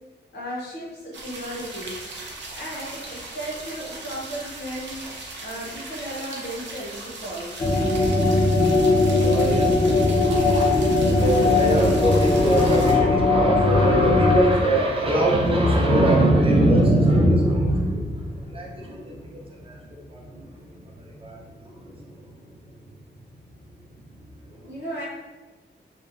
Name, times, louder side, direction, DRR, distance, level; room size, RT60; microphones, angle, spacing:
voice 1, 0.3-2.0 2.5-5.0 5.4-7.7 24.6-25.0, right 1 dB, 65° left, -6 dB, 0.7 m, -35 dB
sound 1, 1.1-12.9, right 2 dB, 75° right, 0.5 m, -38 dB
sound 2, 7.6-14.4, left 3 dB, 30° left, 0.4 m, -19 dB
voice 2, 9.0-22.3 24.4-24.6, right 1 dB, 30° right, -2 dB, 0.5 m, -23 dB
3.0 x 2.1 x 2.4 m, 1.2 s
wide cardioid pair, 165°, 19 cm